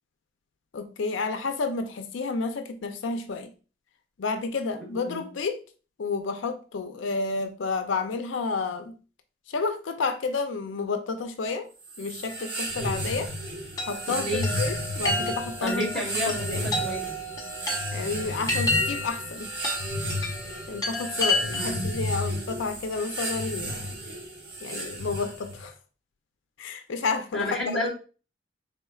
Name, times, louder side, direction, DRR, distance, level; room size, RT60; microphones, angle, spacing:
voice 1, 0.7-3.5 4.2-5.6 6.0-9.0 9.5-11.7 12.0-13.3 13.8-16.7 17.9-19.5 20.7-24.0 24.6-25.7 26.6-27.9, left 4 dB, 75° left, 0.4 m, -30 dB
sound 1, 11.8-25.7, equal, 60° right, 1.1 m, -33 dB
Chime, 13.8-21.9, left 2 dB, 20° left, 0.8 m, -31 dB
voice 2, 14.1-14.5 15.6-17.0 21.5-22.1 27.3-27.9, left 1 dB, 5° left, 1.3 m, -31 dB
4.3 x 3.5 x 2.3 m
head